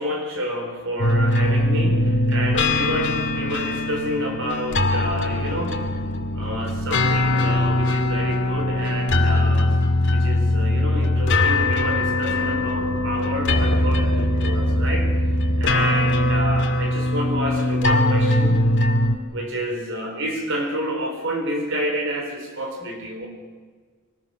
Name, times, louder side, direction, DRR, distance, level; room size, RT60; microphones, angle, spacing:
voice 1, 0.0-5.8 6.4-9.8 10.1-15.1 15.6-18.6 19.3-23.3, equal, 60° right, 3 dB, 4.2 m, -29 dB
sound 1, 1.0-19.2, left 1 dB, 55° left, 2.2 m, -21 dB
24.0 x 20.0 x 6.5 m, 1.5 s
head